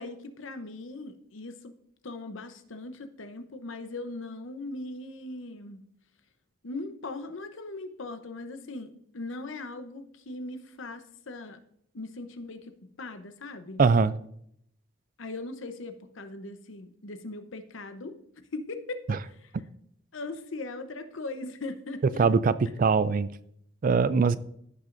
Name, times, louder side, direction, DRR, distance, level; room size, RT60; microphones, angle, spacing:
voice 1, 0.0-1.7 2.0-5.8 6.6-11.6 11.9-13.8 15.2-18.2 18.5-19.5 20.1-22.3, left 2 dB, 65° left, 0.8 m, -39 dB
voice 2, 13.8-14.1 22.2-23.3 23.8-24.4, right 5 dB, 40° right, 0.3 m, -22 dB
15.5 x 6.1 x 2.6 m
head